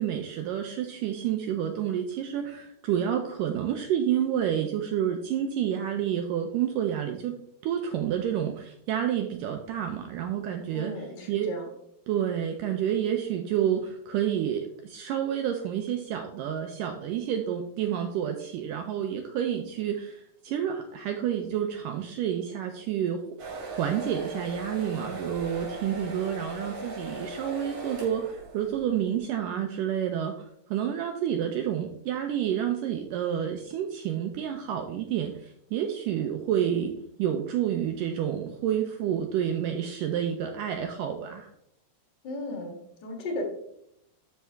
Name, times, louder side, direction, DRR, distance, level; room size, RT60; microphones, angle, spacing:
voice 1, 0.0-7.4 7.6-10.9 11.3-11.5 12.1-41.5, right 9 dB, 85° right, 4 dB, 1.9 m, -29 dB
voice 2, 10.7-11.7 42.2-43.4, left 1 dB, 50° left, 2 dB, 1.3 m, -35 dB
sound 1, 23.4-28.9, right 1 dB, 55° right, 4.1 m, -38 dB
12.0 x 5.5 x 3.5 m, 0.74 s
omnidirectional pair, 4.6 m